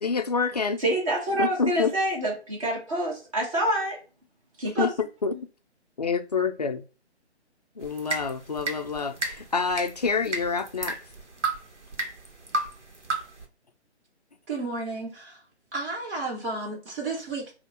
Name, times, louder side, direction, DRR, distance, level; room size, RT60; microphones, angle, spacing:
voice 1, 0.0-0.8 1.4-1.9 4.8-4.9 5.2-5.3 6.0-6.8 7.8-11.0, left 5 dB, 40° left, 0.4 m, -27 dB
voice 2, 0.8-4.0 4.6-4.9, right 1 dB, 30° right, 1.8 m, -26 dB
sound 1, 7.8-13.4, right 2 dB, 85° right, 1.2 m, -34 dB
voice 3, 14.5-15.4 15.7-17.5, right 3 dB, 50° right, 1.4 m, -32 dB
5.0 x 2.4 x 2.8 m
figure-of-eight pair, 145°, 35 cm